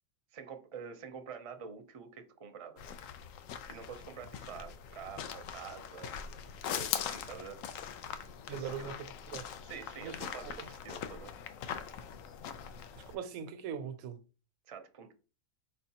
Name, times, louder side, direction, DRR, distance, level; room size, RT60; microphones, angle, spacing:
voice 1, 0.3-2.9 3.7-6.1 6.8-7.6 8.5-8.9 9.6-11.3 14.7-15.1, right 6 dB, 45° right, 0.4 m, -47 dB
sound 1, 2.8-13.1, left 8 dB, 75° left, 0.9 m, -42 dB
voice 2, 8.5-8.9 9.3-9.4 10.0-10.2 10.4-10.7 13.0-14.2, right 7 dB, 90° right, 1.1 m, -40 dB
4.5 x 4.3 x 2.8 m
omnidirectional pair, 1.4 m